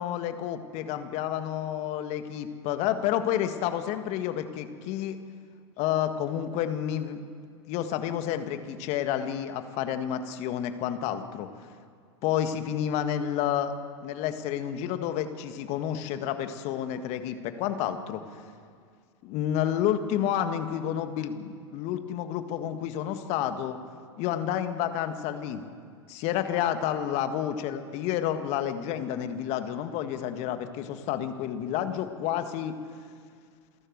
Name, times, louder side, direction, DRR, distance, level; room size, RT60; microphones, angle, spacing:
voice 1, 0.0-5.2 5.8-7.2 7.7-11.5 12.2-13.7 14.0-18.2 19.2-23.8 24.2-25.6 26.1-32.8, left 10 dB, 50° left, 8 dB, 1.8 m, -30 dB
28.0 x 12.0 x 7.9 m, 2.1 s
hypercardioid pair, 95°, 15 cm